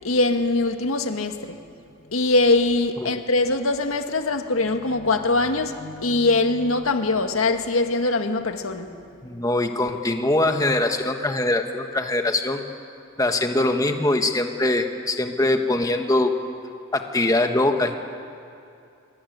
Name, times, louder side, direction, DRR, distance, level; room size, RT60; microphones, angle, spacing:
voice 1, 0.0-1.6 2.1-8.9, left 2 dB, 85° left, 6 dB, 1.8 m, -22 dB
voice 2, 9.2-12.6 13.2-16.3 16.9-18.0, left 2 dB, 15° left, 5 dB, 1.4 m, -22 dB
24.0 x 24.0 x 9.5 m, 2.6 s
head